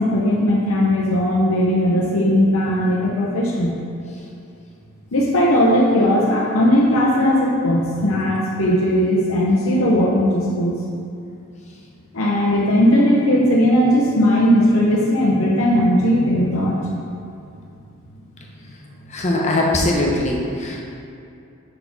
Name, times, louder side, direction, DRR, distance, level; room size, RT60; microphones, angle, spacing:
voice 1, 0.0-3.8 5.1-10.8 12.1-16.8, equal, 70° left, -4 dB, 0.8 m, -17 dB
voice 2, 19.1-20.8, left 1 dB, 30° left, -1 dB, 0.8 m, -20 dB
5.3 x 4.3 x 5.9 m, 2.6 s
head